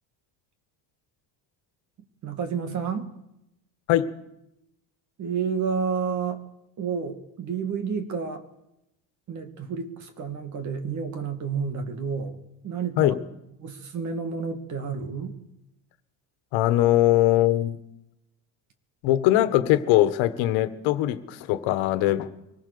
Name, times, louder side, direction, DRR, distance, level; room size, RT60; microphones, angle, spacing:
voice 1, 2.2-3.1 5.2-6.4 6.8-8.4 9.3-13.1 13.6-15.4, right 6 dB, 40° right, 8 dB, 2.4 m, -30 dB
voice 2, 16.5-17.8 19.0-22.3, left 14 dB, 85° left, 12 dB, 1.6 m, -21 dB
24.0 x 20.0 x 6.9 m, 0.87 s
cardioid pair, 180°, 44 cm